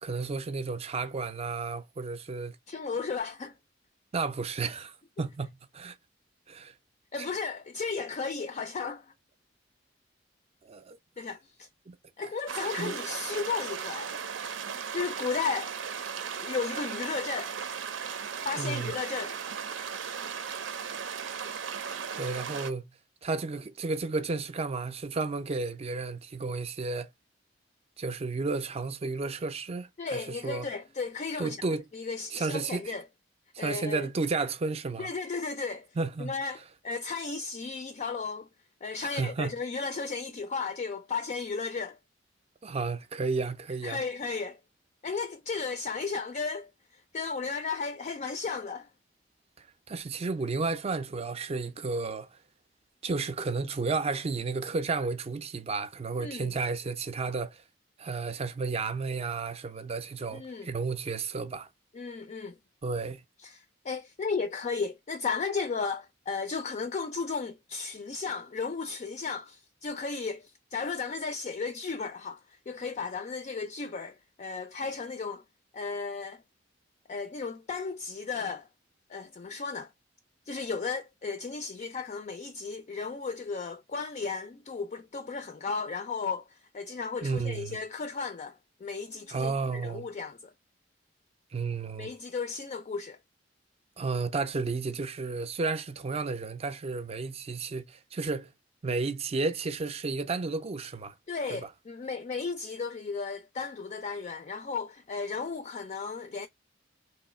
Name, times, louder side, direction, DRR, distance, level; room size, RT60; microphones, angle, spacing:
voice 1, 0.0-2.6 4.1-6.0 6.5-6.7 7.2-7.3 10.6-11.0 11.9-12.0 12.8-13.0 18.6-18.9 22.1-22.8 23.2-27.1 28.0-30.7 31.4-31.8 32.3-32.9 33.5-35.1 36.0-36.3 39.0-39.5 42.6-44.0 49.6-52.4 53.0-57.6 58.0-61.7 62.8-63.2 87.2-87.8 89.3-90.1 91.5-92.1 94.0-98.5 98.8-101.1 101.5-101.7, right 4 dB, 35° right, 0.4 m, -32 dB
voice 2, 2.7-3.5 7.1-9.1 11.2-11.7 12.2-14.2 14.9-15.7 16.4-17.6 18.4-19.4 30.0-31.7 31.9-33.1 33.6-34.1 35.0-35.9 36.2-38.5 38.8-42.0 43.8-44.6 45.0-48.9 56.2-56.5 60.3-60.7 61.9-62.5 63.4-75.4 75.7-76.4 77.1-78.7 79.1-79.9 80.5-90.5 92.0-93.2 101.3-106.5, left 4 dB, 40° left, 0.4 m, -34 dB
sound 1, 12.5-22.7, right 7 dB, 85° right, 0.6 m, -36 dB
3.1 x 2.7 x 4.2 m
head